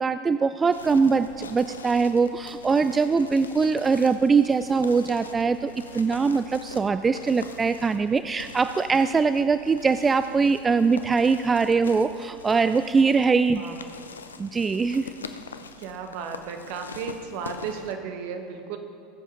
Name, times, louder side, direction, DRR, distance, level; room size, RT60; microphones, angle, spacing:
voice 1, 0.0-13.7 14.4-15.1, right 5 dB, 20° right, 11 dB, 0.3 m, -22 dB
sound 1, 0.7-17.9, left 5 dB, 85° left, 0.6 m, -43 dB
voice 2, 15.8-18.8, right 6 dB, 60° right, 5 dB, 1.3 m, -34 dB
20.0 x 7.5 x 3.8 m, 2.5 s
hypercardioid pair, 80°, 0 cm